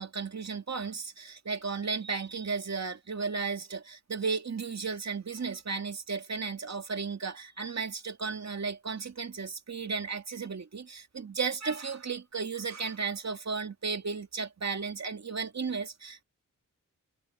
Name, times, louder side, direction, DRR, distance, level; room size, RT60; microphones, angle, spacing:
voice 1, 0.0-16.2, right 5 dB, 55° right, 2.3 m, -34 dB
cardioid pair, 60°, 33 cm